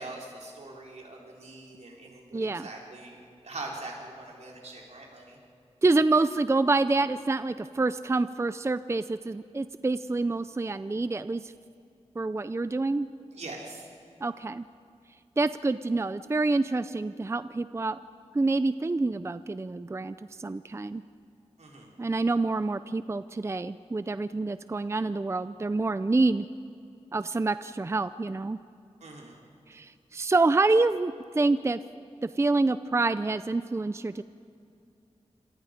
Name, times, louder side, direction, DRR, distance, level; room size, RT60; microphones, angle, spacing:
voice 1, 0.0-3.2 3.4-5.4 13.3-13.9 21.6-21.9 29.0-29.4, right 2 dB, 80° right, -1 dB, 4.0 m, -42 dB
voice 2, 2.3-2.7 5.8-11.5 12.2-13.1 14.2-14.7 15.4-18.0 18.3-21.0 22.0-26.5 27.1-28.6 29.7-31.8 32.2-34.2, right 3 dB, 25° right, 13 dB, 0.5 m, -27 dB
27.0 x 26.5 x 5.1 m, 2.6 s
wide cardioid pair, 90°, 11 cm